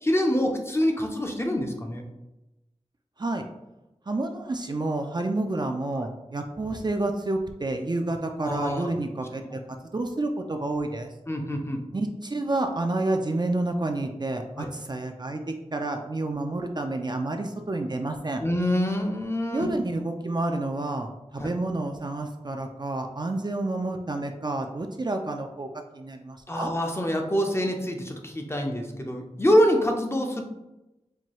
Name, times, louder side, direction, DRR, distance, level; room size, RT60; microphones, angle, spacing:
voice 1, 0.0-2.0 8.4-8.9 9.5-9.6 11.3-11.8 14.6-14.7 18.4-19.7 21.4-21.5 26.5-30.4, equal, 20° left, 3 dB, 0.5 m, -25 dB
voice 2, 4.1-9.6 9.9-11.1 11.9-18.4 19.5-25.7 25.9-26.7, right 2 dB, 40° right, 4 dB, 0.3 m, -29 dB
4.4 x 2.3 x 2.9 m, 0.97 s
wide cardioid pair, 65°, 12 cm